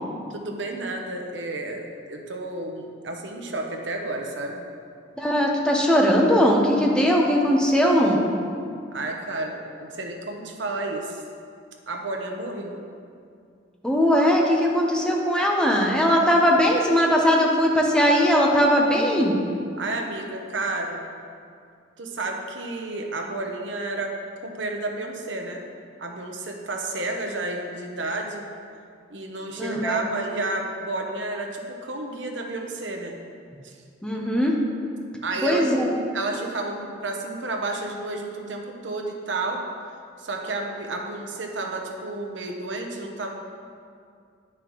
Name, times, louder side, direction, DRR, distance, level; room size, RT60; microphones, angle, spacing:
voice 1, 0.3-4.6 8.9-11.2 11.9-12.8 19.8-21.0 22.0-24.1 24.4-25.7 26.0-28.4 29.1-33.1 33.6-33.7 35.2-35.8 36.1-39.6 40.2-43.3, right 2 dB, 75° right, 2 dB, 0.9 m, -31 dB
voice 2, 5.2-8.3 13.8-19.4 29.6-30.0 34.0-34.5 35.4-35.9, equal, 5° left, -1 dB, 0.9 m, -20 dB
9.9 x 5.9 x 3.1 m, 2.3 s
head